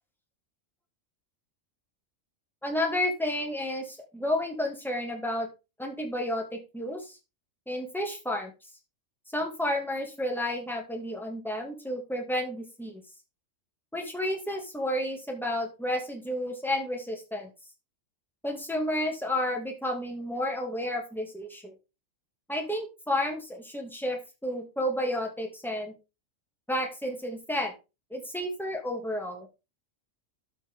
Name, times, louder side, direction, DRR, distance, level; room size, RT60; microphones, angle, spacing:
voice 1, 2.6-5.5 5.8-7.2 7.7-8.5 9.3-13.0 13.9-17.5 18.4-21.7 22.5-25.9 26.7-27.7 28.1-29.5, left 1 dB, ahead, 2 dB, 2.1 m, -31 dB
12.0 x 6.0 x 3.6 m, 0.27 s
omnidirectional pair, 1.4 m